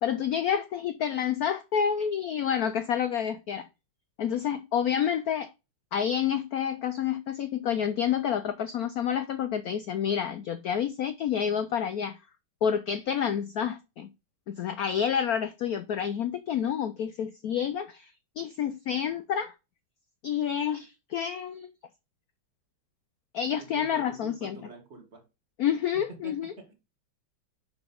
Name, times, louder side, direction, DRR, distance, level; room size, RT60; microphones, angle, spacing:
voice 1, 0.0-3.7 4.2-5.5 5.9-12.2 12.6-14.1 14.5-19.5 20.2-21.7 23.3-24.6 25.6-26.5, left 8 dB, 90° left, 0.8 m, -29 dB
voice 2, 23.7-25.2 26.1-26.7, right 3 dB, 35° right, 2.0 m, -45 dB
6.0 x 5.9 x 5.2 m
omnidirectional pair, 2.3 m